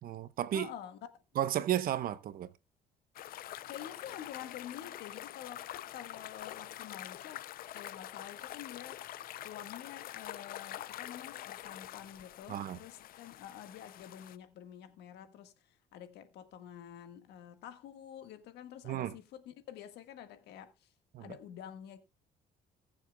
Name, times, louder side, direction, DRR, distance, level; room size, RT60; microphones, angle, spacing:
voice 1, 0.0-0.7 1.3-2.5 12.5-12.8 18.8-19.1 21.1-21.3, right 11 dB, 60° right, 0.8 m, -33 dB
voice 2, 0.5-1.0 3.6-7.5 7.7-9.1 9.4-20.9 21.2-22.0, left 10 dB, 80° left, 1.7 m, -48 dB
sound 1, 3.1-14.4, left 13 dB, 60° left, 0.5 m, -46 dB
20.5 x 7.1 x 2.3 m
cardioid pair, 110°, 17 cm